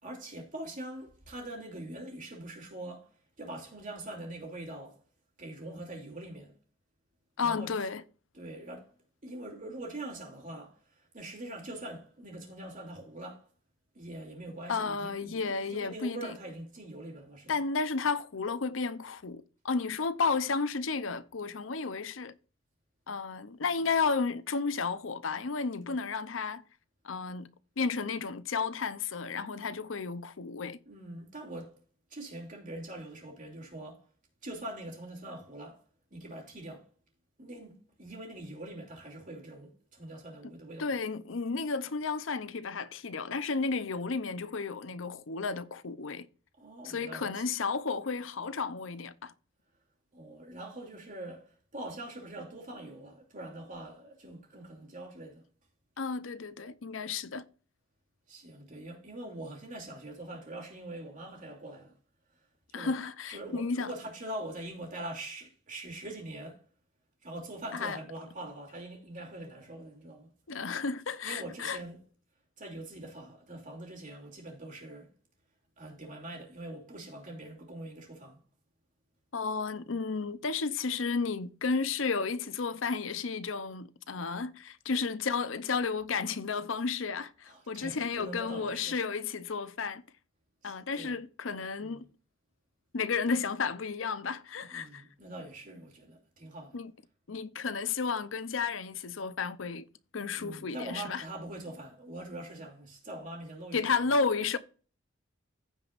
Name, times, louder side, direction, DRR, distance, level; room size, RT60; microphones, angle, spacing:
voice 1, 0.0-3.1 3.4-5.0 5.4-6.6 7.4-7.7 8.3-8.9 9.2-10.8 11.1-13.5 13.9-17.5 25.8-26.0 30.8-31.8 32.1-34.1 34.4-35.8 36.1-36.9 37.4-41.0 46.6-47.4 50.1-55.4 58.3-62.0 62.7-63.0 63.3-66.6 67.2-70.3 71.2-72.0 72.6-75.1 75.8-78.4 87.5-89.0 90.6-91.2 91.8-92.0 94.7-96.8 100.3-103.8, right 1 dB, 40° right, 3.0 m, -43 dB
voice 2, 7.4-8.0 14.7-16.3 17.5-22.3 23.1-26.6 27.0-27.5 27.8-30.8 40.8-46.3 46.8-49.3 56.0-57.4 62.7-63.9 67.7-68.0 70.5-71.8 79.3-90.0 90.6-92.0 92.9-95.0 96.7-96.9 97.3-99.8 100.1-101.2 103.7-104.6, left 4 dB, 80° left, 0.7 m, -32 dB
15.5 x 5.3 x 2.5 m
head